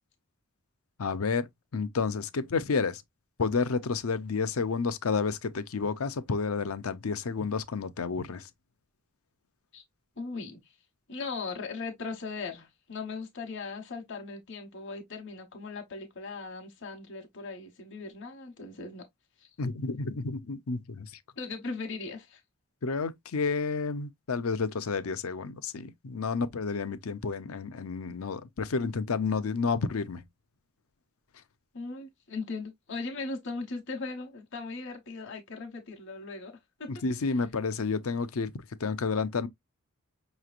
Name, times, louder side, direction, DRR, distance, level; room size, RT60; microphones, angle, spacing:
voice 1, 1.0-3.0 3.4-8.5 19.6-21.1 22.8-30.2 36.9-38.5 38.8-39.5, left 4 dB, 80° left, 0.6 m, -30 dB
voice 2, 10.2-10.6 11.1-19.1 21.4-22.4 31.7-36.5 36.8-36.9, left 3 dB, 60° left, 1.2 m, -38 dB
5.7 x 3.1 x 2.5 m
head